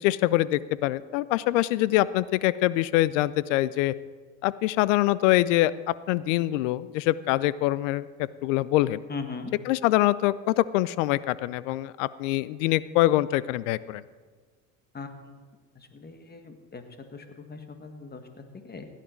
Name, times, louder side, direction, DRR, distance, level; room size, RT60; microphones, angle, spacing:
voice 1, 0.0-3.9 4.4-8.1 8.4-9.0 9.7-14.0, left 16 dB, 75° left, 19 dB, 0.6 m, -24 dB
voice 2, 9.1-9.5 14.9-15.4 15.7-16.8 17.1-18.9, left 4 dB, 25° left, 7 dB, 1.7 m, -40 dB
16.5 x 10.0 x 4.5 m, 1.5 s
hypercardioid pair, 80°, 38 cm